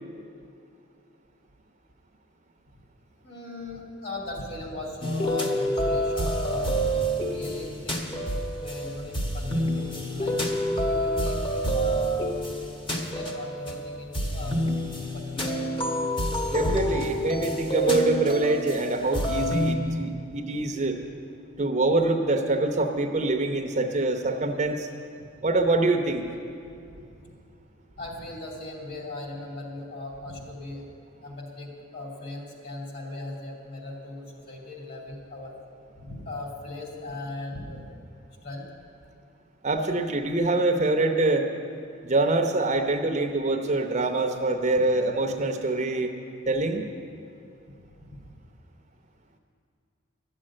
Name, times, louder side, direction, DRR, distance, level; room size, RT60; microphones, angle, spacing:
voice 1, 3.2-6.8 7.2-8.1 8.6-10.5 10.8-12.4 12.9-14.6 15.1-15.6 25.2-25.3 26.9-27.0 27.9-30.8 31.2-35.5 36.0-37.8 38.4-38.7, left 2 dB, 50° left, -2 dB, 2.8 m, -38 dB
sound 1, 5.0-19.7, equal, 25° left, 1.2 m, -28 dB
voice 2, 16.5-21.0 21.6-24.9 25.4-26.2 39.6-41.5 42.0-46.1 46.5-46.8, right 2 dB, 35° right, 5 dB, 0.8 m, -25 dB
12.5 x 7.6 x 9.9 m, 2.5 s
head